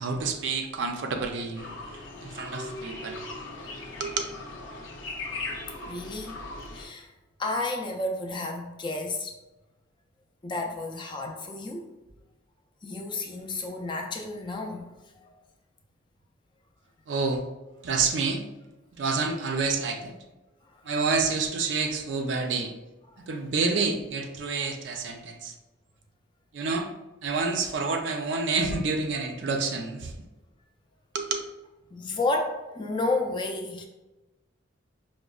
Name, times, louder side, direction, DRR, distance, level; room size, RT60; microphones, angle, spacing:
voice 1, 0.0-1.7 2.2-3.2 4.0-4.2 17.1-17.4 17.8-18.4 19.0-20.1 20.9-22.7 23.3-25.5 26.5-26.9 27.2-30.1 31.1-31.4, right 4 dB, 65° right, 5 dB, 0.4 m, -28 dB
sound 1, 1.6-6.8, left 2 dB, 75° left, 0.6 m, -39 dB
voice 2, 5.9-6.4 6.7-7.1 7.4-9.3 10.4-11.9 12.8-14.9 15.1-15.3 23.1-23.2 31.9-33.8, left 2 dB, 25° left, 2 dB, 0.3 m, -31 dB
4.9 x 2.1 x 2.3 m, 1.1 s
head